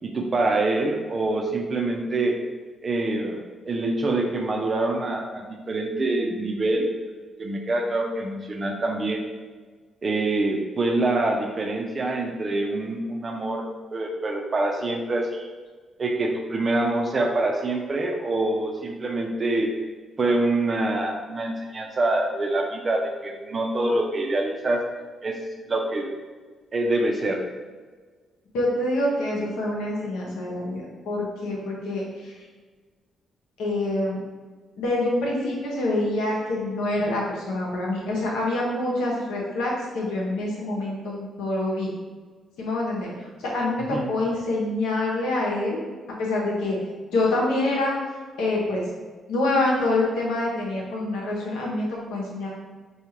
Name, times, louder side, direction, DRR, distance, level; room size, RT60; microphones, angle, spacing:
voice 1, 0.0-2.4 2.8-7.0 7.4-9.2 10.0-13.6 13.9-15.5 16.0-19.7 20.2-24.8 25.2-25.4 25.6-26.1 26.7-27.4 43.8-44.1, right 2 dB, 45° right, 2 dB, 0.7 m, -25 dB
voice 2, 28.5-32.3 33.6-34.2 34.7-41.9 42.6-45.8 46.2-46.8 47.1-47.9 48.4-48.8 49.3-52.5, left 2 dB, 80° left, -3 dB, 0.9 m, -26 dB
4.5 x 2.4 x 2.9 m, 1.5 s
hypercardioid pair, 50°, 0 cm